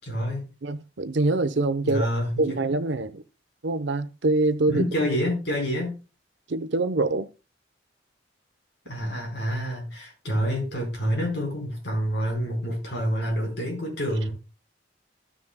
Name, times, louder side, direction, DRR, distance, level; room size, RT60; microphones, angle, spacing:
voice 1, 0.0-0.5 1.8-2.5 4.7-6.0 8.8-14.3, equal, 65° left, 4.4 m, -27 dB
voice 2, 0.6-2.1 2.4-3.2 3.6-4.8 6.5-7.3, right 2 dB, 80° right, 0.8 m, -24 dB
15.0 x 6.2 x 2.2 m
head